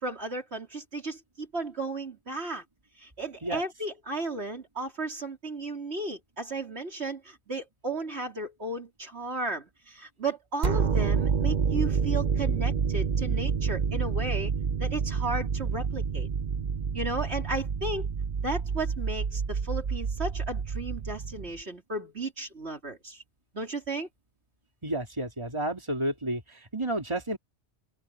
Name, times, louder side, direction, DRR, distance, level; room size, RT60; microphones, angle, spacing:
voice 1, 0.0-2.6 3.0-14.5 14.8-16.3 16.9-18.1 18.4-23.2 23.5-24.1, right 2 dB, 65° right, 4.0 m, -34 dB
sound 1, 10.6-21.6, right 6 dB, 45° right, 0.9 m, -28 dB
voice 2, 24.8-27.4, right 1 dB, 25° right, 3.3 m, -31 dB
open air
omnidirectional pair, 1.2 m